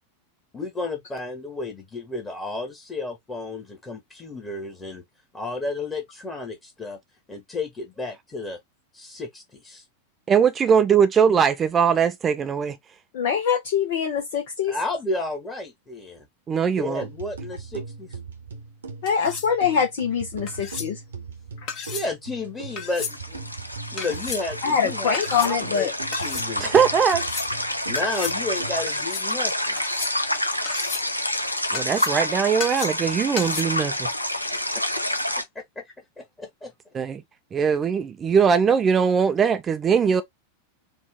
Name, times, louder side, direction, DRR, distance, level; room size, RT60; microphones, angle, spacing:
voice 1, 0.5-5.0 5.3-7.0 7.3-8.6 8.9-9.8 14.7-16.3 16.8-18.1 21.9-23.5 23.9-25.9 26.2-26.7 27.9-29.8 35.5-35.8 36.2-36.7, left 2 dB, 15° left, 1.5 m, -32 dB
voice 2, 10.3-12.8 16.5-17.0 26.6-27.3 31.7-34.1 36.9-37.2 37.5-40.2, right 7 dB, 20° right, 0.5 m, -20 dB
voice 3, 13.1-14.8 19.0-21.0 24.6-25.9, left 7 dB, 50° left, 1.1 m, -24 dB
sound 1, 17.0-29.0, right 4 dB, 70° right, 1.0 m, -39 dB
sound 2, 19.1-19.5 20.5-20.9 21.7-22.1 22.8-23.2 24.0-24.4 25.1-25.5 26.1-26.5 27.1-27.5 27.9-28.4 28.9-29.3 29.8-30.3 30.7-31.1 31.7-32.2 32.6-33.1 33.4-33.6, left 6 dB, 35° left, 1.3 m, -34 dB
sound 3, 22.7-35.4, left 1 dB, 85° left, 0.6 m, -28 dB
4.4 x 2.6 x 3.6 m
figure-of-eight pair, 90°, 0 cm